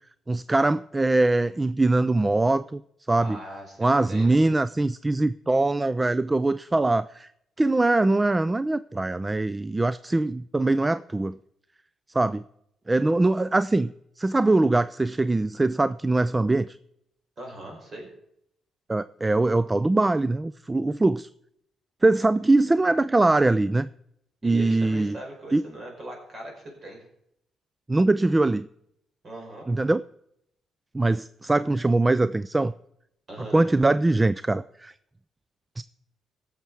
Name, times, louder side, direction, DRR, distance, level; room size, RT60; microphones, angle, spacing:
voice 1, 0.3-2.8 3.1-3.4 3.8-7.3 7.6-11.4 12.1-12.4 12.9-13.9 14.2-16.8 18.9-21.3 22.0-23.9 24.4-25.2 25.5-25.6 27.9-28.7 29.7-30.0 30.9-32.7 33.5-34.9 35.8-35.9, right 2 dB, 20° right, 16 dB, 0.3 m, -22 dB
voice 2, 3.1-4.4 17.4-18.1 24.4-27.0 29.2-29.7 33.3-33.6, right 1 dB, 40° right, 1 dB, 4.7 m, -40 dB
16.5 x 7.2 x 4.6 m, 0.76 s
cardioid pair, 90°, 0 cm